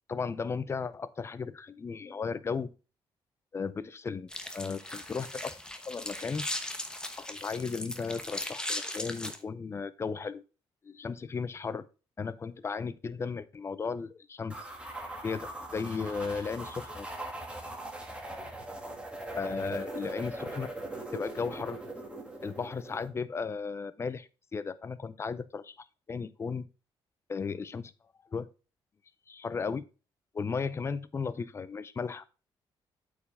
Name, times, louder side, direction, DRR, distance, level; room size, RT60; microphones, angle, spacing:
voice 1, 0.1-2.7 3.5-5.5 5.8-6.5 7.2-10.4 10.8-11.9 12.2-14.5 15.2-17.1 19.4-20.7 21.1-21.8 22.4-26.7 27.3-27.9 28.3-28.5 29.3-29.9 30.3-32.2, left 5 dB, 25° left, 0.5 m, -35 dB
sound 1, 4.3-9.4, left 1 dB, 10° left, 0.9 m, -38 dB
sound 2, 14.5-23.1, right 2 dB, 10° right, 1.8 m, -41 dB
8.4 x 4.8 x 3.5 m
cardioid pair, 120°, 10 cm